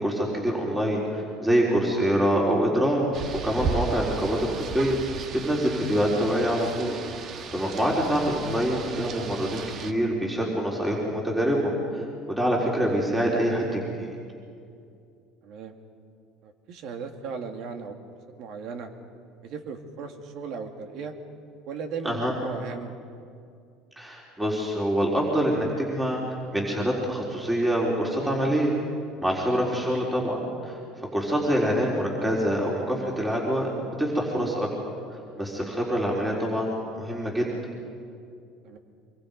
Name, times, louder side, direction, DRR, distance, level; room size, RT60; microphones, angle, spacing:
voice 1, 0.0-3.0 3.4-5.0 5.4-7.0 7.2-12.0 12.3-14.1 22.0-22.3 24.0-26.2 26.5-28.7 29.2-34.7 35.4-37.5, equal, 10° right, -2 dB, 4.3 m, -25 dB
Rain, 3.1-9.9, right 6 dB, 45° right, 1.5 m, -35 dB
voice 2, 15.4-15.7 16.4-18.0 18.4-18.9 19.4-21.1 21.6-22.9 28.2-28.4 29.7-29.9 34.3-34.5 38.6-38.8, right 5 dB, 60° right, 5 dB, 2.3 m, -37 dB
25.5 x 23.0 x 5.4 m, 2.3 s
supercardioid pair, 100°, 0 cm